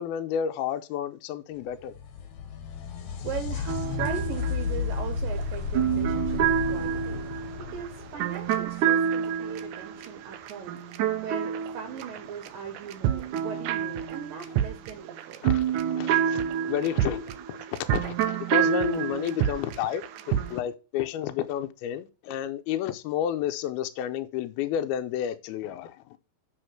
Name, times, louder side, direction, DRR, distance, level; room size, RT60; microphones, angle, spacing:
voice 1, 0.0-1.9 15.4-15.6 16.0-16.4 16.7-17.6 17.9-26.0, left 10 dB, 80° left, 2.5 m, -31 dB
sound 1, 1.7-9.3 12.7-12.8 13.8-13.9, left 5 dB, 60° left, 2.1 m, -33 dB
voice 2, 3.2-7.3 7.6-10.8 11.2-15.4, right 7 dB, 70° right, 2.4 m, -39 dB
sound 2, 3.7-12.5 12.7-20.6, right 9 dB, 90° right, 1.7 m, -28 dB
7.8 x 6.3 x 6.5 m
omnidirectional pair, 4.6 m